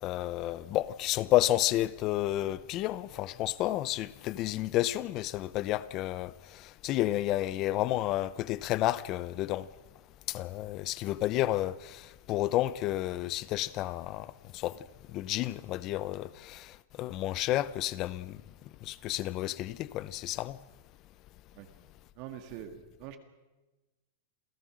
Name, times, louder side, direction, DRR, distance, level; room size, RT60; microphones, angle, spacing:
voice 1, 0.0-6.3 6.6-9.7 10.3-14.3 14.5-14.8 15.1-16.7 17.0-18.4 18.8-20.6, left 15 dB, 35° left, 0.7 m, -31 dB
voice 2, 22.2-23.2, right 10 dB, 45° right, 1.9 m, -44 dB
28.0 x 16.5 x 6.3 m
supercardioid pair, 155°, 0 cm